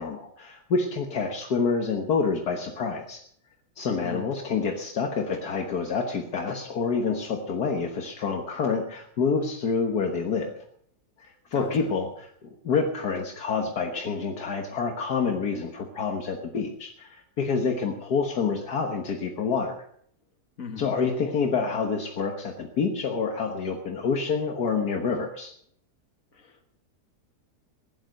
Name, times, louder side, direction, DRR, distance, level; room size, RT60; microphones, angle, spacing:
voice 1, 0.0-3.2 3.8-10.5 11.2-19.7 20.8-25.5, left 5 dB, 70° left, 3 dB, 1.8 m, -27 dB
voice 2, 11.5-11.9 20.6-20.9 26.3-26.7, left 4 dB, 55° left, 5 dB, 2.3 m, -38 dB
16.0 x 11.0 x 6.4 m, 0.67 s
omnidirectional pair, 1.8 m